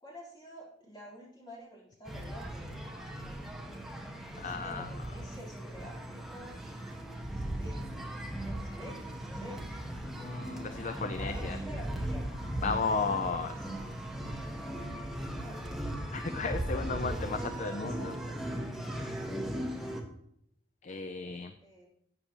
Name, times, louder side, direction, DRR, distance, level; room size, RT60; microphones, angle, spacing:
voice 1, 0.0-2.8 4.3-6.6 7.3-8.1 8.4-9.6 10.6-10.9 11.2-12.2 12.8-13.4 15.3-15.8 16.7-18.3 21.6-21.9, equal, 20° left, -6 dB, 3.6 m, -49 dB
sound 1, 2.1-20.0, right 1 dB, ahead, 1.1 m, -38 dB
voice 2, 4.4-4.9 10.2-11.6 12.6-13.5 16.1-18.1 20.8-21.5, left 4 dB, 40° left, 9 dB, 0.4 m, -34 dB
12.0 x 8.5 x 2.9 m, 0.72 s
head